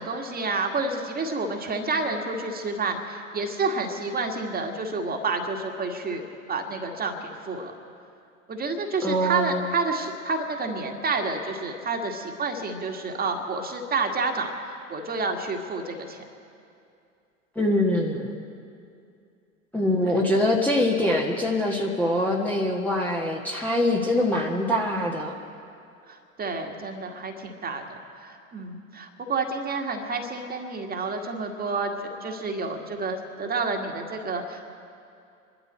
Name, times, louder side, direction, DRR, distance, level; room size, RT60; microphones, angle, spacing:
voice 1, 0.0-6.2 6.5-7.7 8.5-16.2 20.0-20.2 26.1-31.9 32.2-34.7, right 3 dB, 20° right, 4 dB, 1.8 m, -29 dB
voice 2, 9.0-9.6 17.5-18.3 19.7-25.3, left 1 dB, 5° left, -2 dB, 1.3 m, -24 dB
27.5 x 12.0 x 4.4 m, 2.5 s
figure-of-eight pair, 80°, 42 cm